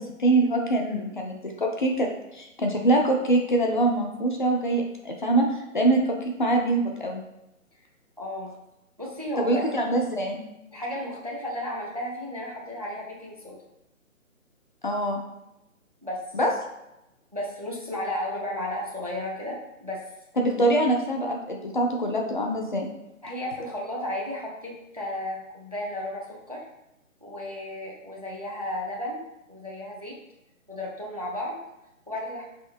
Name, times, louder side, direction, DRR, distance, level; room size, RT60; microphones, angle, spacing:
voice 1, 0.0-7.2 9.4-10.4 14.8-15.2 16.3-16.5 20.4-22.9, right 2 dB, 40° left, 1 dB, 0.5 m, -24 dB
voice 2, 8.2-8.5 9.0-9.6 10.7-13.6 16.0-16.3 17.3-20.0 23.2-26.7 27.2-30.2 30.7-31.6 32.1-32.4, left 1 dB, 30° right, -1 dB, 0.4 m, -34 dB
4.1 x 3.5 x 2.6 m, 0.89 s
hypercardioid pair, 160°, 41 cm